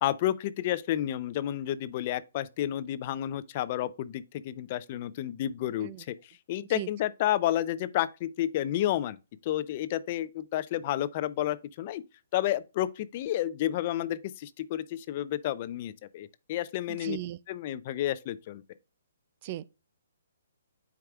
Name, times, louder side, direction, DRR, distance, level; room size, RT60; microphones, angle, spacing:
voice 1, 0.0-9.2 9.4-12.0 12.3-17.2 17.5-18.6, left 12 dB, 35° left, 0.5 m, -31 dB
voice 2, 17.0-17.4 19.4-19.6, right 13 dB, 35° right, 0.3 m, -36 dB
9.4 x 4.8 x 2.3 m
hypercardioid pair, 160°, 0 cm